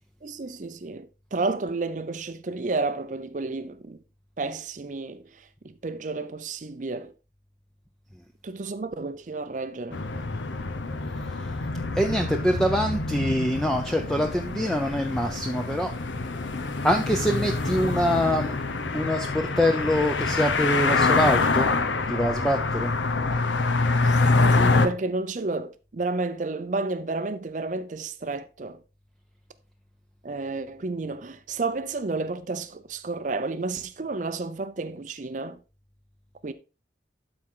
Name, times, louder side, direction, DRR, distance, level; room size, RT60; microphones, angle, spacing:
voice 1, 0.2-4.0 4.4-5.2 5.6-7.1 8.4-10.0 24.0-24.2 24.5-28.8 30.2-35.6 36.4-36.5, right 3 dB, 45° right, 0.5 m, -31 dB
sound 1, 9.9-24.9, left 3 dB, 85° left, 0.9 m, -25 dB
voice 2, 11.9-15.9 16.8-18.6 18.9-21.7 22.1-22.9, equal, 5° left, 0.5 m, -24 dB
12.0 x 4.3 x 3.8 m
head